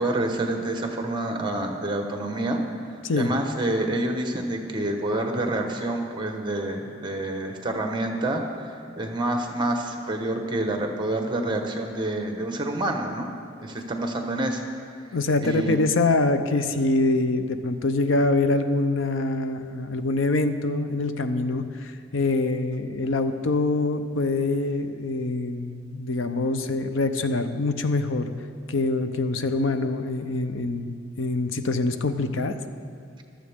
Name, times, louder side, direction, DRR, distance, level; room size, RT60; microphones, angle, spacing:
voice 1, 0.0-2.6 3.1-13.3 13.6-14.6 15.0-15.8, right 1 dB, 25° right, 3 dB, 1.1 m, -28 dB
voice 2, 15.1-28.3 28.7-32.6, left 2 dB, 75° left, 9 dB, 0.7 m, -25 dB
15.0 x 12.5 x 3.6 m, 2.3 s
head